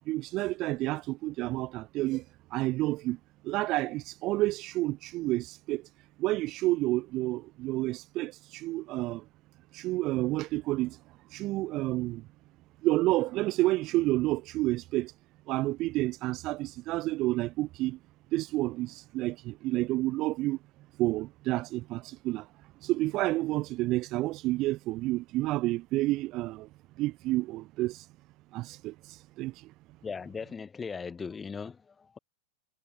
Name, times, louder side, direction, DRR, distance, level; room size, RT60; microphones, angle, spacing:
voice 1, 0.1-2.2 2.5-3.2 3.4-5.9 6.2-9.2 9.7-11.0 11.3-12.3 12.8-15.1 15.5-18.0 18.3-20.6 21.0-22.5 22.8-26.7 27.0-28.1 28.5-29.7, right 18 dB, 40° right, 0.6 m, -30 dB
voice 2, 30.0-32.2, left 5 dB, 15° left, 3.3 m, -38 dB
figure-of-eight pair, 90°, 0 cm